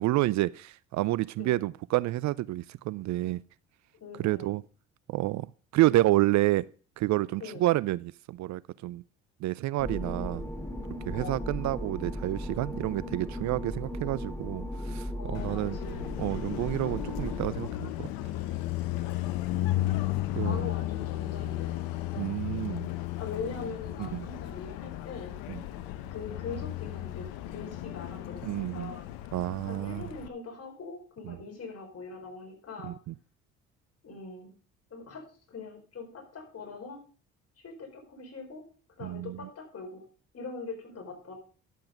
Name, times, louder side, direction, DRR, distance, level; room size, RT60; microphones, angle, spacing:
voice 1, 0.0-3.4 4.2-4.6 5.1-5.5 5.7-6.7 7.0-9.0 9.4-10.4 11.1-15.8 16.2-18.1 20.3-20.7 22.1-22.9 24.0-24.3 25.5-25.6 28.4-28.9 29.3-30.0 31.3-31.4 32.8-33.1 39.0-39.4, right 17 dB, 55° right, 20 dB, 0.5 m, -29 dB
voice 2, 4.0-4.6 7.4-7.7 11.1-11.4 15.2-16.0 19.2-20.0 20.4-21.8 23.2-25.4 26.1-29.2 29.7-32.9 34.0-34.5 34.9-37.0 37.6-38.6 39.0-40.0 40.3-41.3, left 4 dB, 45° left, 3 dB, 4.6 m, -42 dB
sound 1, 9.8-17.5, left 1 dB, 10° left, 2.1 m, -37 dB
Car passing by, 15.3-30.3, left 14 dB, 75° left, 1.0 m, -34 dB
11.0 x 7.7 x 5.1 m, 0.40 s
hypercardioid pair, 55°, 35 cm